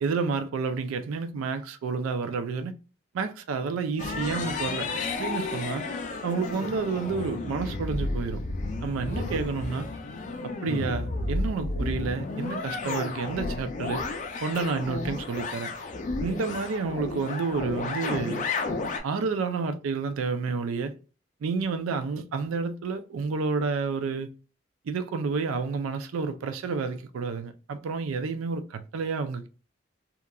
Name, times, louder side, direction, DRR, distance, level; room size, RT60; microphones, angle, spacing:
voice 1, 0.0-2.7 3.1-4.9 5.2-5.8 6.2-8.4 8.8-9.9 10.4-14.0 14.4-15.7 16.2-18.5 19.0-20.9 21.4-24.3 24.9-29.5, right 4 dB, 85° right, 0.4 m, -30 dB
sound 1, 4.0-19.0, left 3 dB, 35° left, 0.3 m, -32 dB
2.8 x 2.4 x 2.2 m
head